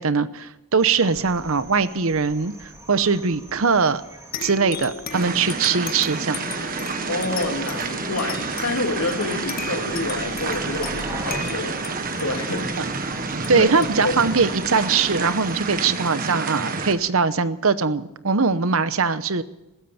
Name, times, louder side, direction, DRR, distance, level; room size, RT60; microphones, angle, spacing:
voice 1, 0.0-4.0 4.4-6.4 13.5-19.4, right 5 dB, 65° right, 14 dB, 0.9 m, -21 dB
sound 1, 0.8-16.0, right 1 dB, 15° right, 2.3 m, -43 dB
sound 2, 4.3-15.4, left 4 dB, 40° left, 1.7 m, -37 dB
sound 3, 5.1-16.9, right 4 dB, 40° right, 1.4 m, -29 dB
voice 2, 7.1-11.8 12.2-12.8 13.5-13.7 14.0-14.2, left 2 dB, 85° left, 3 dB, 2.8 m, -28 dB
20.5 x 16.0 x 4.3 m, 1.0 s
head